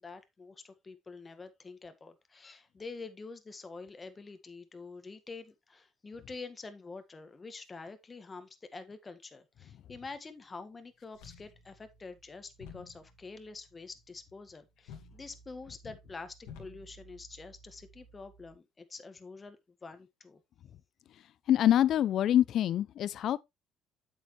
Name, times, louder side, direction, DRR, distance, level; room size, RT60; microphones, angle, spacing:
voice 1, 0.0-19.6 19.8-20.4, left 4 dB, 25° left, 1.7 m, -47 dB
sound 1, 11.1-18.5, left 3 dB, 85° left, 2.2 m, -54 dB
voice 2, 21.5-23.4, left 11 dB, 60° left, 0.6 m, -25 dB
8.4 x 7.2 x 3.2 m
supercardioid pair, 85°, 0 cm